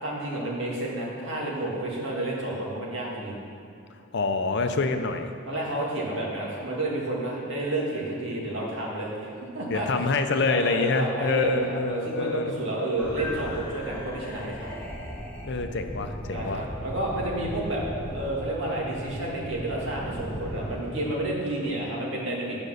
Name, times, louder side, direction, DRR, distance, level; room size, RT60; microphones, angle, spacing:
voice 1, 0.0-3.3 5.5-10.1 10.4-14.8 16.3-17.8 18.1-22.6, right 1 dB, 60° right, -4 dB, 2.2 m, -30 dB
voice 2, 4.1-5.3 9.7-12.4 15.5-16.6, left 3 dB, 55° left, 7 dB, 0.6 m, -26 dB
sound 1, 13.0-21.1, equal, 5° left, 1.3 m, -37 dB
Piano, 13.2-15.3, left 2 dB, 30° right, 1.2 m, -43 dB
9.8 x 5.3 x 6.5 m, 2.5 s
head